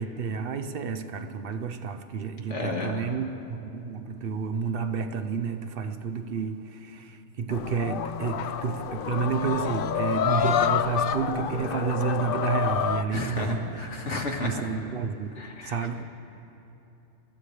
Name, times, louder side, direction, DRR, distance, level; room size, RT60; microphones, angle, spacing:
voice 1, 0.0-13.9 14.4-16.0, right 5 dB, 60° right, 0.8 m, -30 dB
voice 2, 2.5-3.1 13.1-14.6 15.4-16.0, left 2 dB, 90° left, 2.0 m, -33 dB
sound 1, 7.5-13.0, left 8 dB, 60° left, 0.6 m, -28 dB
26.0 x 14.0 x 3.3 m
omnidirectional pair, 1.2 m